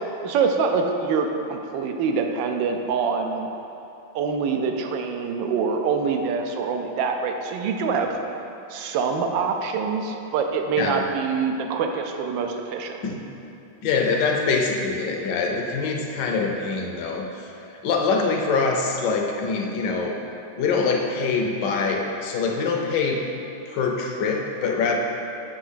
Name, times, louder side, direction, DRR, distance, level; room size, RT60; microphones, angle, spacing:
voice 1, 0.2-3.5 4.1-8.2 8.7-13.0, right 5 dB, 80° right, 4 dB, 1.3 m, -25 dB
voice 2, 13.8-20.2 20.6-23.3 23.7-25.0, left 4 dB, 70° left, 1 dB, 1.3 m, -24 dB
7.2 x 3.4 x 5.6 m, 2.9 s
omnidirectional pair, 2.1 m